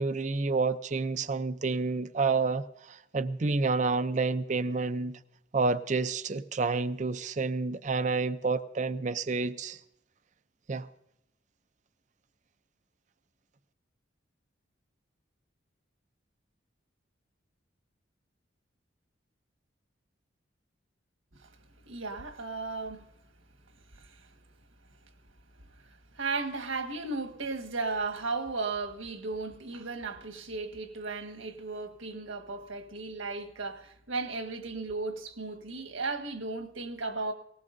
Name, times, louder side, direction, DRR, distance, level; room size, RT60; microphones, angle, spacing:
voice 1, 0.0-5.2 5.5-9.8 10.7-10.9, right 4 dB, 40° right, 0.5 m, -29 dB
voice 2, 21.9-23.1 23.9-24.3 25.8-37.3, right 3 dB, 90° right, 1.5 m, -35 dB
19.0 x 18.5 x 2.6 m
head